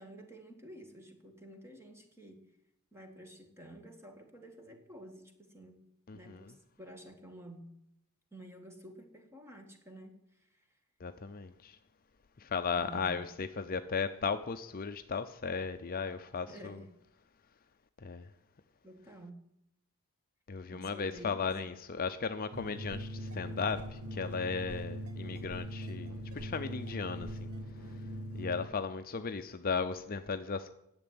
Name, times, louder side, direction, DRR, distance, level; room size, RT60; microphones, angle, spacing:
voice 1, 0.0-2.5 2.9-5.8 6.1-7.8 8.3-10.8 12.8-13.2 16.5-16.9 18.8-19.4 20.7-21.5, right 1 dB, 10° right, 1.8 m, -51 dB
voice 2, 6.1-6.5 11.0-11.8 12.4-16.8 18.0-18.3 20.5-27.5 28.3-30.7, left 5 dB, 40° left, 0.6 m, -36 dB
sound 1, 22.5-28.7, equal, 75° right, 1.6 m, -41 dB
10.5 x 7.9 x 9.3 m
head